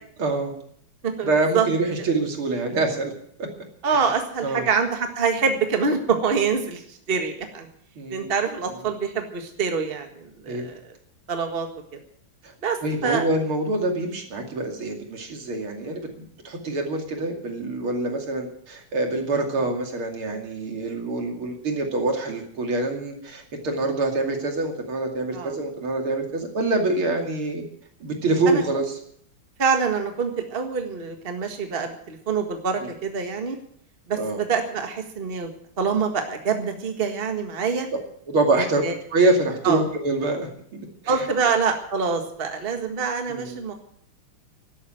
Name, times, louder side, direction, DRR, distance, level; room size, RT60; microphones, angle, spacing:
voice 1, 0.2-0.6 1.2-3.1 3.4-3.5 3.9-4.0 4.4-4.7 8.0-8.3 10.5-10.7 12.8-16.1 16.4-27.6 28.0-28.8 32.8-32.9 34.2-34.4 38.3-38.8 39.1-40.5 41.0-41.2 43.3-43.6, right 2 dB, 70° right, 3 dB, 3.4 m, -25 dB
voice 2, 1.0-1.7 3.8-7.7 8.1-10.8 11.3-11.7 11.9-12.0 12.6-13.3 25.3-25.6 28.5-28.6 29.6-33.6 34.1-35.5 35.8-37.9 38.8-38.9 39.6-39.8 41.1-43.7, right 5 dB, 30° right, 5 dB, 1.8 m, -25 dB
12.5 x 12.5 x 9.1 m, 0.66 s
omnidirectional pair, 2.4 m